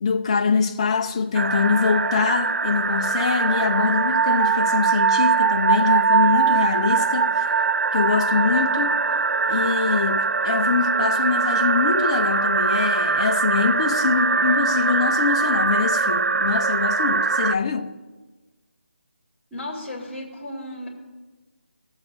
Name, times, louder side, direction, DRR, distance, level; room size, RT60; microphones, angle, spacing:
voice 1, 0.0-7.4 7.9-9.0 9.5-18.0, left 5 dB, 25° left, 0.5 m, -24 dB
sound 1, 1.3-17.5, right 5 dB, 90° right, 0.3 m, -22 dB
voice 2, 19.5-20.9, left 1 dB, ahead, 2.0 m, -34 dB
21.0 x 8.0 x 2.6 m
figure-of-eight pair, 170°, 7 cm